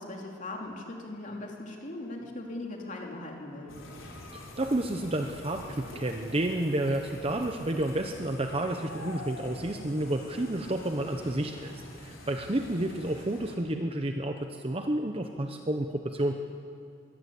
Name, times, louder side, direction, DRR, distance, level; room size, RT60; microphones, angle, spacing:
voice 1, 0.0-3.8, left 2 dB, 40° left, 0 dB, 3.0 m, -39 dB
sound 1, 3.7-13.5, left 2 dB, 90° left, 3.9 m, -45 dB
voice 2, 4.3-16.3, right 1 dB, 30° right, 5 dB, 0.8 m, -30 dB
22.5 x 16.0 x 8.5 m, 2.5 s
head